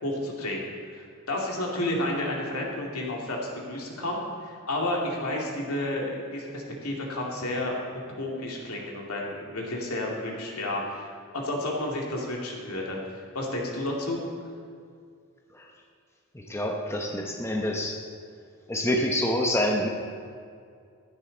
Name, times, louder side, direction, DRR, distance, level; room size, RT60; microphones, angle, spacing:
voice 1, 0.0-0.6 0.9-7.8 8.2-11.1 11.3-13.0 13.3-14.2, left 1 dB, 80° left, -1 dB, 2.5 m, -31 dB
voice 2, 16.3-18.0 18.7-19.9, left 1 dB, 10° left, 1 dB, 0.9 m, -27 dB
15.5 x 11.0 x 4.0 m, 2.3 s
head